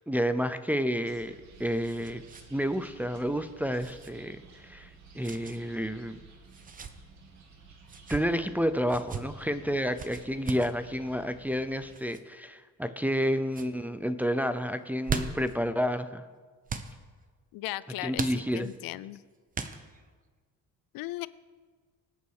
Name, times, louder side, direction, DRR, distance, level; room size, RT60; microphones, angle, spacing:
voice 1, 0.1-2.2 2.5-4.9 5.1-6.2 8.1-16.2 18.0-18.7, equal, 5° right, 9 dB, 0.4 m, -30 dB
sound 1, 1.0-12.0, right 4 dB, 55° right, 2.4 m, -54 dB
sound 2, 1.1-2.5 2.7-2.9 3.8-4.1 5.2-5.6 6.5-6.9 7.8-8.2 8.9-9.2 10.0-10.7 11.9-12.2 12.8-13.2 13.5-13.7 14.8-15.5 16.7-16.9 18.1-18.8 19.5-20.1, right 5 dB, 25° right, 0.8 m, -37 dB
voice 2, 17.5-18.2 18.5-19.2 20.9-21.3, left 17 dB, 80° left, 18 dB, 0.6 m, -36 dB
24.5 x 8.5 x 4.8 m, 1.5 s
cardioid pair, 160°, 35 cm